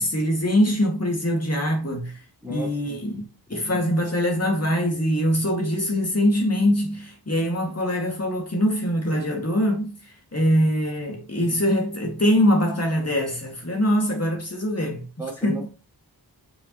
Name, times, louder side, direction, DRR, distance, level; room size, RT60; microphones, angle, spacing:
voice 1, 0.0-2.2 2.5-3.2 3.5-9.9 10.3-15.1 15.4-15.7, equal, 35° left, 2.3 m, -23 dB
voice 2, 2.4-3.0 3.5-3.6 15.2-15.7, right 1 dB, 5° right, 3.3 m, -35 dB
7.3 x 5.4 x 3.1 m
wide cardioid pair, 70°, 41 cm